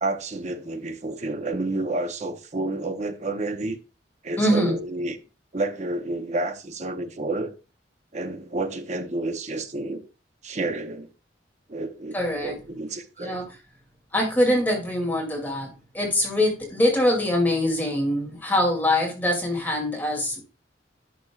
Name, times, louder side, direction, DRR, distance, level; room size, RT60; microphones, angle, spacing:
voice 1, 0.0-3.8 4.2-5.2 5.5-7.5 8.1-10.0 10.4-11.1 11.7-13.4, right 2 dB, 40° right, 0.8 m, -30 dB
voice 2, 4.4-4.8 12.1-12.6 13.2-13.5 14.1-20.4, left 1 dB, 10° left, 2.5 m, -23 dB
11.0 x 6.0 x 2.4 m
head